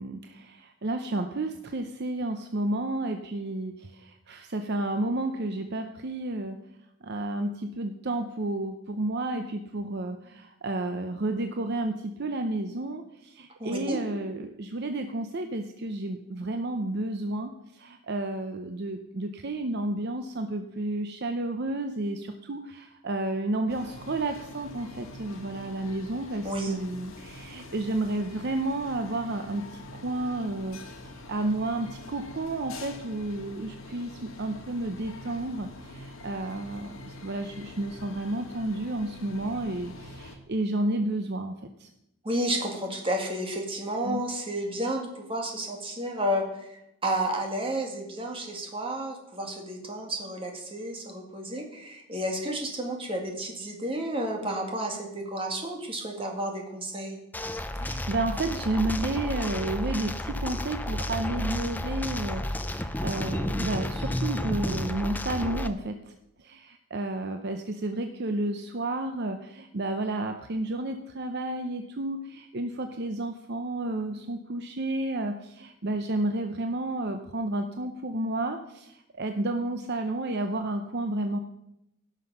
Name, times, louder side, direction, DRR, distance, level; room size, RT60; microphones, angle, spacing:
voice 1, 0.0-6.6 7.0-30.8 31.3-41.5 41.8-41.9 44.0-44.2 57.7-66.0 66.4-81.4, right 2 dB, 50° right, 6 dB, 0.6 m, -31 dB
voice 2, 13.6-14.0 26.4-26.8 42.2-46.7 47.0-57.2, right 1 dB, 25° right, 1 dB, 2.0 m, -31 dB
sound 1, 23.7-40.4, left 2 dB, 70° left, 1.7 m, -45 dB
sound 2, 57.3-65.7, left 1 dB, 10° left, 0.4 m, -31 dB
16.5 x 6.2 x 5.5 m, 0.85 s
head